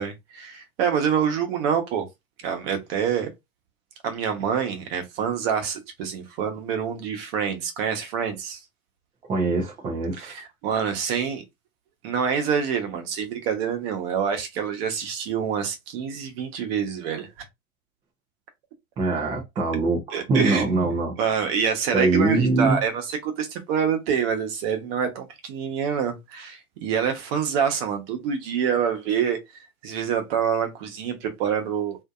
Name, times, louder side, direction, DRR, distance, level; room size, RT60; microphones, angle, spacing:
voice 1, 0.0-2.1 2.4-3.3 4.0-8.6 10.2-11.4 12.0-17.3 20.1-29.4 29.8-32.0, right 7 dB, 45° right, 1.0 m, -26 dB
voice 2, 9.3-10.3 19.0-21.1 21.9-22.8, right 3 dB, 10° right, 0.4 m, -23 dB
2.7 x 2.5 x 2.3 m
hypercardioid pair, 115°, 43 cm